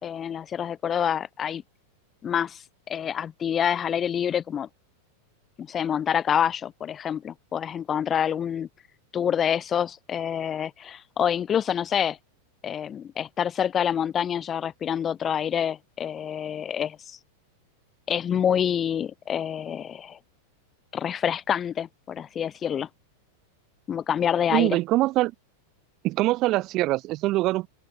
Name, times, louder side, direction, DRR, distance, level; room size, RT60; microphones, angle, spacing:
voice 1, 0.0-1.6 2.2-4.7 5.6-8.7 9.1-12.2 12.6-17.2 18.1-20.2 20.9-22.9 23.9-24.8, left 8 dB, 25° left, 2.5 m, -27 dB
voice 2, 24.5-25.3 26.0-27.7, right 18 dB, 40° right, 2.7 m, -23 dB
open air
figure-of-eight pair, 90°, 0 cm